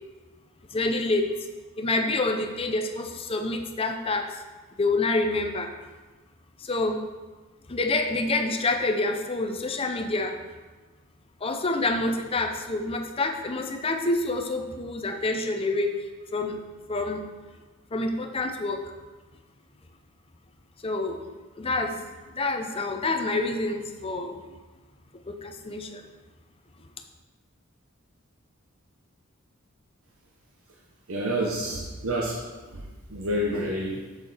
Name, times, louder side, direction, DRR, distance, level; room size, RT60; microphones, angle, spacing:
voice 1, 0.7-1.3 1.8-4.4 4.8-5.7 6.6-7.0 7.7-10.4 11.4-15.9 16.3-16.6 16.9-17.2 17.9-18.8 20.8-21.3 21.6-24.4 25.3-26.0, left 2 dB, 25° left, 5 dB, 0.6 m, -27 dB
voice 2, 31.1-32.4 32.7-34.0, equal, 80° right, -2 dB, 0.9 m, -29 dB
7.5 x 6.6 x 4.1 m, 1.3 s
head